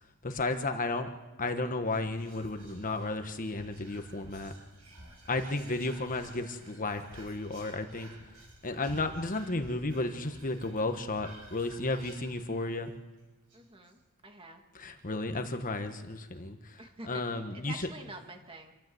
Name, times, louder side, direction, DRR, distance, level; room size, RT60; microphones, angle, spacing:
voice 1, 0.2-1.1 1.4-4.5 5.3-8.1 8.6-12.9 14.7-16.8 17.1-17.8, left 2 dB, 40° left, 7 dB, 1.3 m, -33 dB
Whispering, 1.8-12.9 13.2-13.3 13.5-13.9, right 1 dB, 90° right, 7.4 m, -52 dB
voice 2, 13.5-14.6 16.8-18.7, right 2 dB, 25° right, 4 dB, 2.1 m, -47 dB
27.0 x 13.0 x 7.9 m, 1.1 s
head